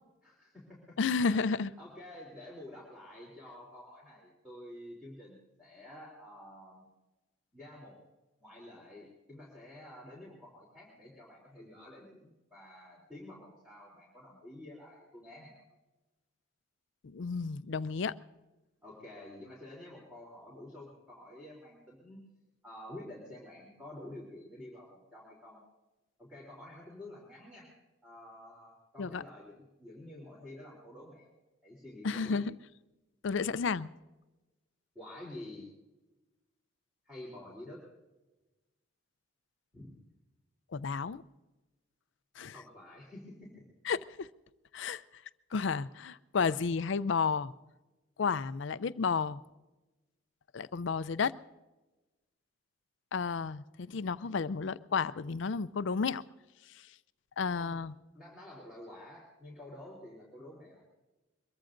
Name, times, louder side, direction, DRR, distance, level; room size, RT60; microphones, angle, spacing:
voice 1, 0.2-6.9 7.5-8.0 8.4-15.6 18.8-22.2 22.6-25.6 26.2-27.7 28.0-32.4 34.9-35.7 37.0-37.9 39.7-39.9 42.5-43.6 57.5-57.8 58.1-60.8, left 1 dB, 5° right, 3.3 m, -49 dB
voice 2, 1.0-1.7 17.0-18.2 29.0-29.2 32.0-32.5 33.2-33.9 40.7-41.2 42.4-42.5 43.9-44.3 44.7-45.0 45.5-47.5 48.2-49.4 50.5-51.3 53.1-56.2 57.4-57.9, left 5 dB, 65° left, 0.5 m, -32 dB
23.0 x 22.5 x 2.6 m
head